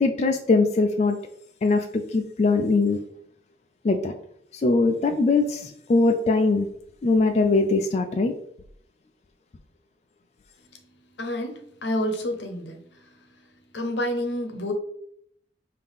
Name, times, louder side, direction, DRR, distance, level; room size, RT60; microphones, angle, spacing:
voice 1, 0.0-1.2 1.6-3.0 3.8-4.1 4.5-6.7 7.0-8.3, left 3 dB, 40° left, 5 dB, 0.4 m, -21 dB
voice 2, 11.2-12.8 13.7-14.7, left 1 dB, 80° left, 5 dB, 0.8 m, -28 dB
5.4 x 2.8 x 3.5 m, 0.70 s
head